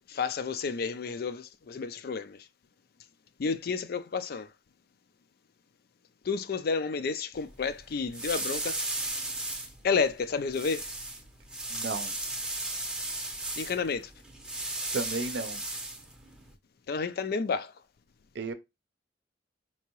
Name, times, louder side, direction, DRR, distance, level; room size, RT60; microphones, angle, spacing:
voice 1, 0.1-2.5 3.4-4.5 6.2-8.8 9.8-10.9 13.6-14.1 16.9-17.8, left 5 dB, 60° left, 0.4 m, -31 dB
sound 1, 7.3-16.5, right 2 dB, 5° right, 0.6 m, -36 dB
voice 2, 11.7-12.1 14.9-15.6 18.3-18.5, right 3 dB, 70° right, 0.6 m, -33 dB
4.5 x 2.9 x 2.9 m
head